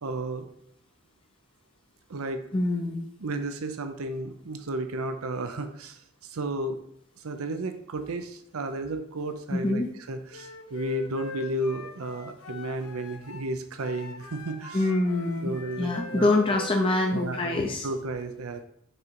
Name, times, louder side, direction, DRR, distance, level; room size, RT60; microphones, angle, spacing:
voice 1, 0.0-0.5 2.1-2.4 3.2-6.8 7.2-14.9 15.4-16.3 17.1-18.6, right 2 dB, 85° right, 8 dB, 0.7 m, -33 dB
voice 2, 2.5-3.1 9.5-9.9 14.7-17.9, left 2 dB, 25° left, 1 dB, 0.6 m, -25 dB
Wind instrument woodwind instrument, 10.3-13.5 13.8-17.2, left 4 dB, 85° left, 0.8 m, -43 dB
6.6 x 3.9 x 4.5 m, 0.69 s
head